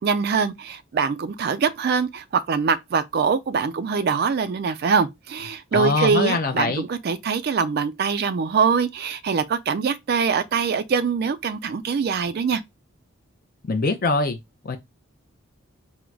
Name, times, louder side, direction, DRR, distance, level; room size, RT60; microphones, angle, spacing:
voice 1, 0.0-12.6, right 5 dB, 45° right, 0.3 m, -23 dB
voice 2, 5.7-6.8 13.7-14.4 14.6-14.8, left 3 dB, 45° left, 0.5 m, -23 dB
3.8 x 2.1 x 4.4 m
head